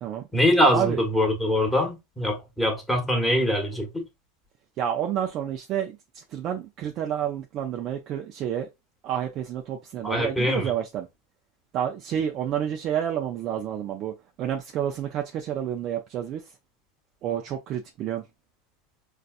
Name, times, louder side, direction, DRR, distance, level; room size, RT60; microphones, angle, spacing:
voice 1, 0.3-4.1 10.0-10.7, equal, 5° left, 1.2 m, -23 dB
voice 2, 4.8-8.7 9.0-11.1 11.7-16.5 17.2-18.2, right 10 dB, 45° right, 0.4 m, -29 dB
4.0 x 2.4 x 2.4 m
supercardioid pair, 115°, 0 cm